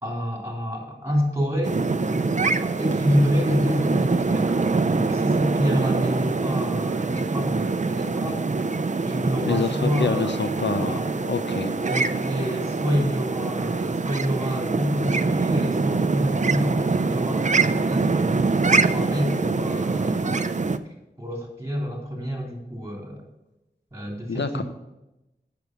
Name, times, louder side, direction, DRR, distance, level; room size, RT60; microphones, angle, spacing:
voice 1, 0.0-1.8 2.6-8.4 9.0-10.4 10.8-11.1 11.8-20.5 21.2-23.2 23.9-24.6, equal, 15° right, -1 dB, 3.4 m, -27 dB
sound 1, 1.6-20.8, right 4 dB, 40° right, 0.5 m, -24 dB
voice 2, 9.4-11.7 24.3-24.6, left 4 dB, 75° left, 9 dB, 0.7 m, -27 dB
8.2 x 6.9 x 6.1 m, 0.95 s
wide cardioid pair, 50°, 18 cm